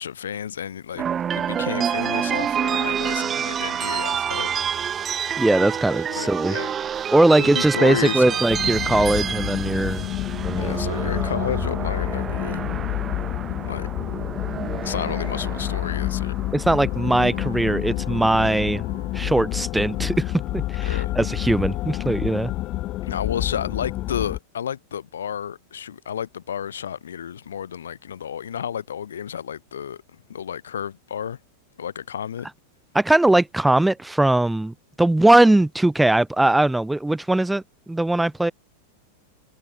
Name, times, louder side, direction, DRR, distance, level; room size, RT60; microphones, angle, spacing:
voice 1, 0.0-4.5 6.1-6.7 7.4-8.5 10.6-12.7 13.6-13.9 14.8-16.3 20.9-21.1 23.0-31.4 31.8-32.5, left 8 dB, 65° left, 0.6 m, -31 dB
sound 1, 1.0-17.2, right 8 dB, 25° right, 1.2 m, -28 dB
voice 2, 5.4-6.6 7.1-10.1 10.4-10.8 16.5-18.8 19.1-22.5 32.9-38.5, right 1 dB, 5° right, 0.5 m, -20 dB
sound 2, 8.5-24.4, left 17 dB, 35° left, 0.9 m, -28 dB
sound 3, 16.7-23.7, right 2 dB, 85° right, 2.1 m, -46 dB
figure-of-eight pair, 90°, 0 cm